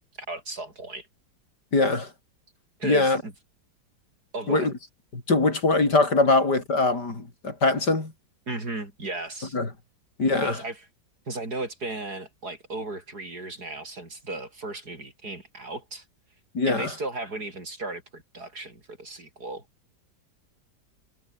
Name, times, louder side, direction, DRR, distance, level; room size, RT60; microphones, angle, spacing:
voice 1, 0.3-1.1 2.8-3.3 4.3-4.7 8.5-9.6 10.4-10.8 11.3-16.0 16.7-19.6, right 2 dB, 60° right, 6.2 m, -35 dB
voice 2, 1.7-2.1 2.8-3.2 4.5-4.7 5.1-8.1 9.5-9.7 10.2-10.6 16.5-16.9, left 3 dB, 65° left, 5.3 m, -22 dB
omnidirectional pair, 1.9 m